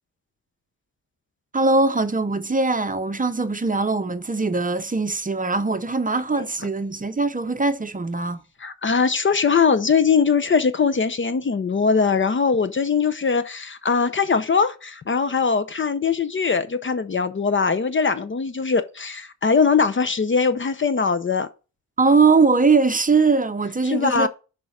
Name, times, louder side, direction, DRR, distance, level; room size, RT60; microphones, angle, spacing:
voice 1, 1.5-8.4 22.0-24.3, right 3 dB, 25° right, 0.7 m, -21 dB
voice 2, 8.6-21.5 23.8-24.3, left 5 dB, 35° left, 0.6 m, -21 dB
6.1 x 4.9 x 5.7 m
cardioid pair, 75°, 34 cm